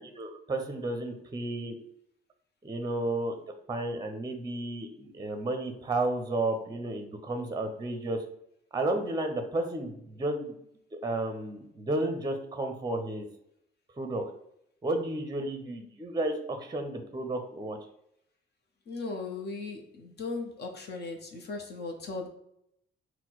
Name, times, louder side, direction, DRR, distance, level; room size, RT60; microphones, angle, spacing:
voice 1, 0.0-1.8 2.6-3.4 3.7-8.2 8.7-10.5 10.9-13.3 14.0-14.2 14.8-17.8, right 2 dB, 20° right, 6 dB, 0.6 m, -32 dB
voice 2, 18.9-22.3, left 3 dB, 55° left, 2 dB, 0.9 m, -37 dB
4.2 x 2.2 x 4.1 m, 0.75 s
cardioid pair, 90°, 20 cm